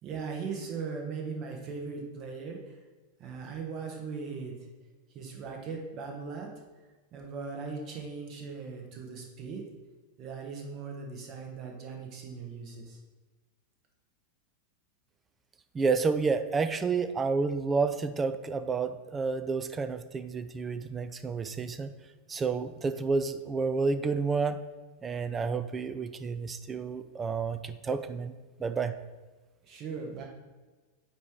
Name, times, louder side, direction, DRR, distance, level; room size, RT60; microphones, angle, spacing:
voice 1, 0.0-2.8 3.2-4.5 5.1-6.5 7.1-9.7 10.2-13.0 29.6-30.3, right 5 dB, 35° right, 1 dB, 1.3 m, -39 dB
voice 2, 15.7-21.9 22.3-24.6 25.0-28.3 28.6-28.9, right 4 dB, 20° right, 11 dB, 0.4 m, -30 dB
9.0 x 3.0 x 4.7 m, 1.2 s
figure-of-eight pair, 90°, 0 cm